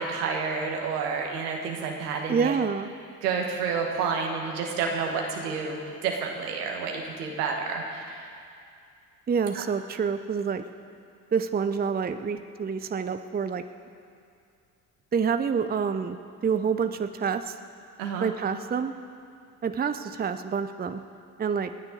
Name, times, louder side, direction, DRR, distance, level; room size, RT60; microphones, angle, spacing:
voice 1, 0.0-2.5 3.2-8.3 9.5-9.6 18.0-18.3, right 5 dB, 75° right, 1 dB, 1.9 m, -30 dB
voice 2, 2.3-2.9 9.3-10.6 11.3-13.6 15.1-16.2 16.4-17.5 18.2-18.9 19.6-21.0 21.4-21.7, right 6 dB, 20° right, 9 dB, 0.7 m, -27 dB
28.5 x 9.9 x 4.0 m, 2.4 s
figure-of-eight pair, 50°, 47 cm